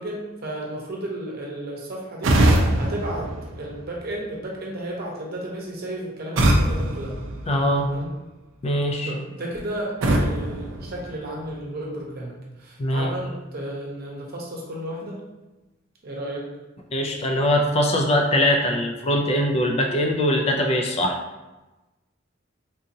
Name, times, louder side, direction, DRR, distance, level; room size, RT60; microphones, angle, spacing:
voice 1, 0.0-7.2 7.8-8.1 9.0-15.2 16.0-16.5, right 1 dB, 55° right, -2 dB, 0.8 m, -33 dB
sound 1, 2.2-4.2 6.4-8.1 10.0-11.6, right 1 dB, 85° right, 0.5 m, -23 dB
voice 2, 7.4-7.9 8.6-9.1 12.8-13.1 16.9-21.2, left 1 dB, 30° left, 2 dB, 0.4 m, -22 dB
3.7 x 2.7 x 2.6 m, 1.1 s
head